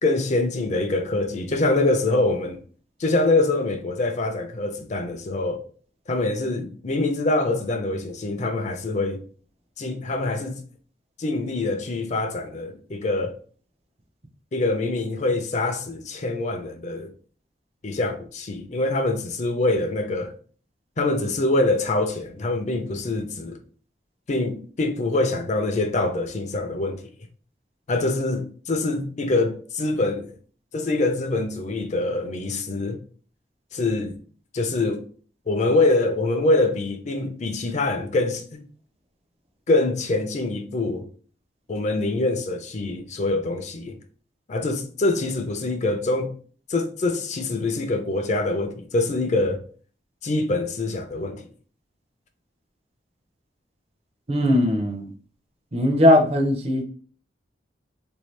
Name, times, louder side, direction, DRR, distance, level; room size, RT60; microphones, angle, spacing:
voice 1, 0.0-2.6 3.0-5.6 6.1-9.2 9.8-10.6 11.2-13.4 14.5-17.1 17.8-20.3 21.0-23.6 24.3-27.0 27.9-30.3 30.7-33.0 33.7-34.2 34.5-35.0 35.5-38.6 39.7-41.1 41.7-44.0 44.5-46.4 46.7-49.6 50.2-51.4, left 2 dB, 40° left, 0.5 m, -24 dB
voice 2, 54.3-55.1 55.7-56.8, left 1 dB, 35° right, 0.6 m, -19 dB
3.7 x 2.7 x 3.2 m
head